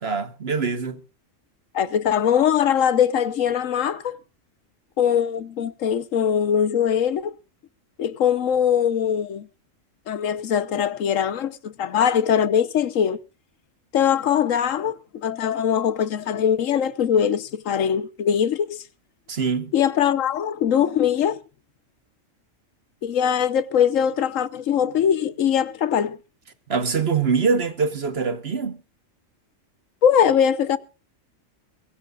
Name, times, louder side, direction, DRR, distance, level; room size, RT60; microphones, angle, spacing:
voice 1, 0.0-1.0 19.3-19.7 26.7-28.8, right 5 dB, 50° right, 1.5 m, -24 dB
voice 2, 1.7-4.2 5.0-7.4 8.0-9.5 10.1-13.2 13.9-18.8 19.7-21.4 23.0-26.2 30.0-30.8, left 8 dB, 80° left, 1.3 m, -21 dB
23.0 x 15.0 x 2.4 m
omnidirectional pair, 1.3 m